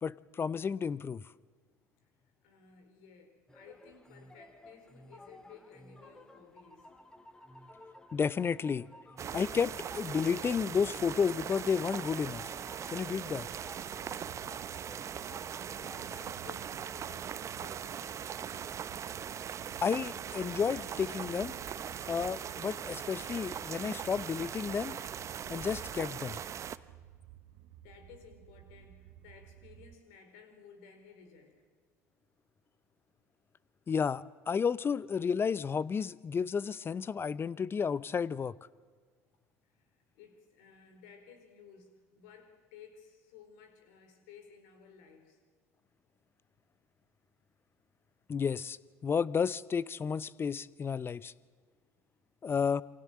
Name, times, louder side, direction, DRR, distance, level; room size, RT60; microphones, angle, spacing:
voice 1, 0.0-1.2 8.1-8.9 9.3-12.5 12.9-13.5 19.8-21.6 22.1-25.0 25.5-26.4 33.9-38.5 48.3-48.8 49.0-51.3 52.4-52.8, left 6 dB, 30° left, 20 dB, 0.7 m, -32 dB
voice 2, 2.0-7.0 15.8-18.4 27.8-31.7 39.6-45.4, left 6 dB, 65° left, 6 dB, 4.8 m, -56 dB
sound 1, 3.5-16.3, left 1 dB, 10° left, 1.9 m, -55 dB
sound 2, 9.2-26.8, right 8 dB, 35° right, 0.9 m, -40 dB
sound 3, 13.2-29.9, right 12 dB, 60° right, 1.0 m, -56 dB
28.0 x 23.5 x 7.6 m, 1.5 s
figure-of-eight pair, 65°, 8 cm